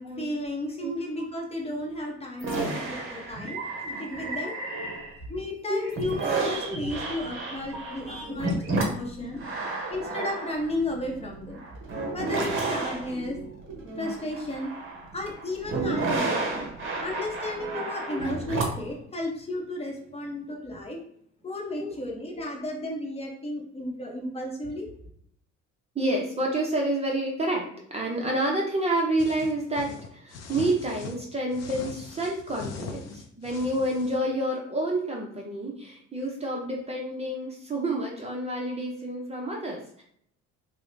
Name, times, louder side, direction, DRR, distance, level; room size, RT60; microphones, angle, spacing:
voice 1, 0.0-4.6 5.3-9.5 9.9-11.6 12.1-13.4 14.0-14.7 15.1-16.4 17.0-21.0 21.4-24.9, left 1 dB, 20° left, -1 dB, 0.8 m, -33 dB
sound 1, 2.4-5.4 5.8-18.9, right 3 dB, 45° right, 0.9 m, -32 dB
voice 2, 6.4-6.8 7.9-8.0 8.3-8.4 8.7-8.9 9.2-9.3 15.8-16.1 18.1-18.3 21.8-21.9 22.3-22.4 25.9-27.6 27.9-40.0, right 1 dB, 20° right, -1 dB, 0.6 m, -29 dB
sound 2, 29.2-31.2 31.5-34.2, left 5 dB, 60° left, 0.6 m, -40 dB
4.7 x 2.1 x 2.6 m, 0.66 s
cardioid pair, 110°, 30 cm